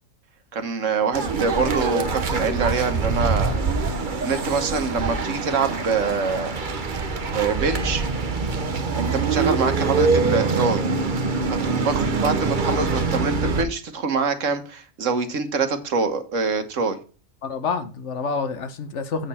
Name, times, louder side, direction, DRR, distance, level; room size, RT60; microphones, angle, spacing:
voice 1, 0.5-3.5 4.2-6.5 7.3-8.0 8.9-10.8 11.6-17.0, right 5 dB, 70° right, 1.5 m, -25 dB
sound 1, 1.1-13.6, right 4 dB, 40° right, 1.0 m, -24 dB
voice 2, 17.4-19.3, left 4 dB, 65° left, 1.2 m, -28 dB
7.9 x 6.6 x 4.2 m
omnidirectional pair, 1.4 m